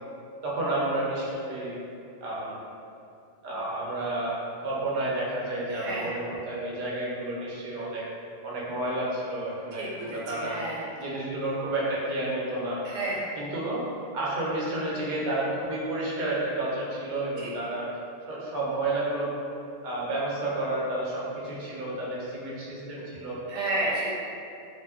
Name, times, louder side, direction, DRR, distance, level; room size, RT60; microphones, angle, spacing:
voice 1, 0.4-1.8 2.2-2.6 3.4-8.0 8.4-10.5 11.0-12.8 13.4-13.8 14.1-17.9 18.3-19.3 19.8-23.4, right 2 dB, 55° right, -6 dB, 0.6 m, -31 dB
voice 2, 5.7-6.1 9.7-10.9 12.8-13.2 17.4-17.5 23.5-24.2, right 1 dB, 80° right, -5 dB, 0.9 m, -31 dB
2.2 x 2.0 x 3.3 m, 2.6 s
omnidirectional pair, 1.3 m